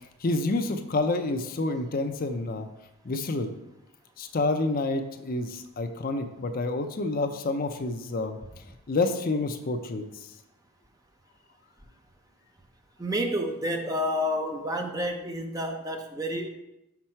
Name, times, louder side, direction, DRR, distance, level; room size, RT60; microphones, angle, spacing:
voice 1, 0.2-2.7 3.0-3.5 4.2-10.0, left 2 dB, 40° left, 6 dB, 0.5 m, -28 dB
voice 2, 13.0-16.5, equal, 15° right, 4 dB, 0.5 m, -29 dB
5.9 x 5.4 x 4.4 m, 0.91 s
head